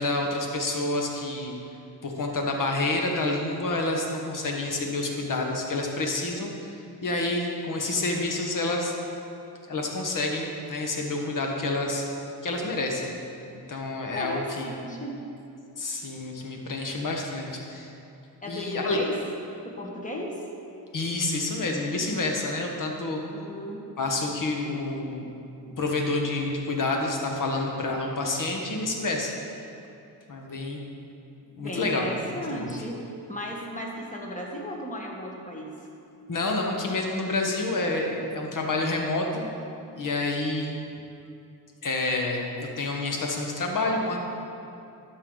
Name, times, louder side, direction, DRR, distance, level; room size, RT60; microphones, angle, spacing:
voice 1, 0.0-1.5 2.0-6.7 7.0-8.9 9.7-12.1 12.4-13.1 13.7-14.7 15.8-17.9 18.4-19.0 20.9-23.2 24.0-25.2 25.6-29.3 30.3-30.8 31.5-32.1 32.3-32.7 36.3-39.4 39.9-40.7 41.8-44.2, left 2 dB, 50° left, 1 dB, 1.4 m, -28 dB
voice 2, 14.1-15.2 18.4-19.2 19.6-20.4 22.0-22.2 23.3-23.8 31.6-35.8, equal, 20° left, -1 dB, 1.6 m, -35 dB
11.5 x 6.6 x 3.9 m, 2.6 s
cardioid pair, 80°, 39 cm